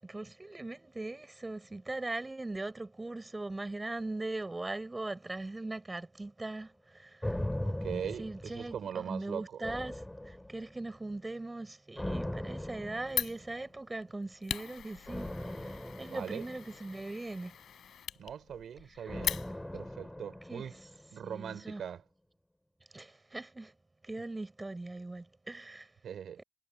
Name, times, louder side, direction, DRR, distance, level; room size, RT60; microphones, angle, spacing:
voice 1, 0.0-7.4 7.9-17.6 18.9-19.1 20.5-20.6 21.2-21.8 22.9-23.7 24.0-25.9 26.4-26.5, right 2 dB, 15° right, 6.7 m, -40 dB
Cinematic Impact Boom, 7.2-9.1 9.6-10.9 12.0-13.7 15.1-17.5 19.1-21.2 21.5-21.6, left 1 dB, 5° left, 5.4 m, -40 dB
voice 2, 7.6-9.6 16.1-16.5 18.2-19.4 19.7-20.8 21.1-22.0 26.0-26.4, right 8 dB, 60° right, 4.6 m, -40 dB
Fire, 13.1-19.9, left 9 dB, 60° left, 4.3 m, -40 dB
cardioid pair, 90°, 0 cm